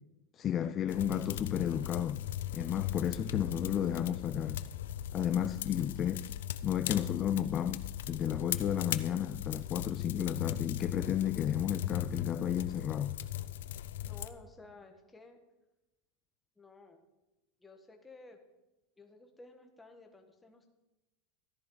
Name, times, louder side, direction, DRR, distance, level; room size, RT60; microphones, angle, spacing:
voice 1, 0.3-2.2 2.5-4.6 5.1-6.3 6.6-13.2, left 10 dB, 30° left, 0.4 m, -33 dB
sound 1, 0.9-14.3, left 11 dB, 85° left, 0.6 m, -38 dB
voice 2, 14.0-15.4 16.6-17.0 17.6-18.4 19.0-20.7, left 3 dB, 10° left, 1.5 m, -54 dB
13.5 x 10.5 x 4.0 m
supercardioid pair, 140°, 0 cm